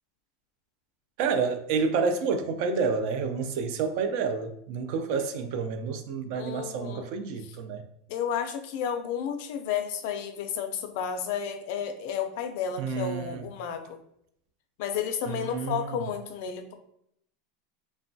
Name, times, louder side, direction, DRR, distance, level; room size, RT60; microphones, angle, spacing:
voice 1, 1.2-7.8 12.8-13.5 15.3-16.0, right 5 dB, 55° right, 8 dB, 0.3 m, -29 dB
voice 2, 6.3-7.0 8.1-14.0 14.8-16.7, left 8 dB, 60° left, 7 dB, 0.3 m, -32 dB
3.0 x 2.2 x 2.6 m, 0.72 s
supercardioid pair, 160°, 0 cm